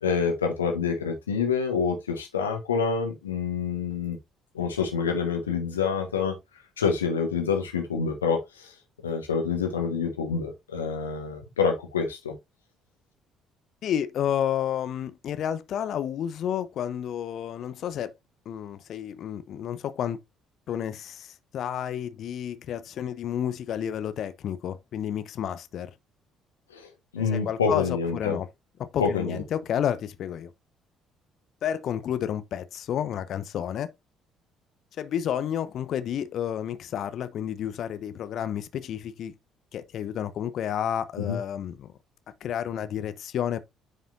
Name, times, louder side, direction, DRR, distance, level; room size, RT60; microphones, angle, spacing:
voice 1, 0.0-4.2 4.5-6.3 6.8-8.7 9.0-12.3 26.7-28.4 29.0-29.4 41.2-41.4, left 5 dB, 80° left, 1.4 m, -27 dB
voice 2, 13.8-18.1 18.5-20.2 20.7-25.9 27.2-28.5 28.9-30.5 31.6-33.9 35.0-39.3 39.7-41.9 42.4-43.6, left 9 dB, 50° left, 0.7 m, -31 dB
9.7 x 5.1 x 2.6 m
figure-of-eight pair, 50°, 0 cm